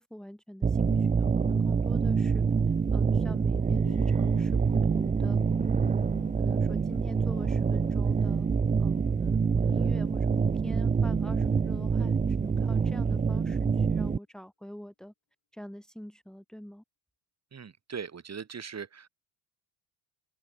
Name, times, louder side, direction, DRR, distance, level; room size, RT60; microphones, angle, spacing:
voice 1, 0.0-2.5 2.9-5.4 5.8-8.5 8.8-15.1 15.5-16.8, equal, ahead, 3.1 m, -44 dB
sound 1, 0.6-14.2, right 5 dB, 15° right, 0.7 m, -26 dB
sound 2, 3.5-11.9 12.3-12.4, left 11 dB, 50° left, 7.1 m, -53 dB
voice 2, 17.5-19.1, right 6 dB, 30° right, 6.5 m, -40 dB
open air
supercardioid pair, 90°, 48 cm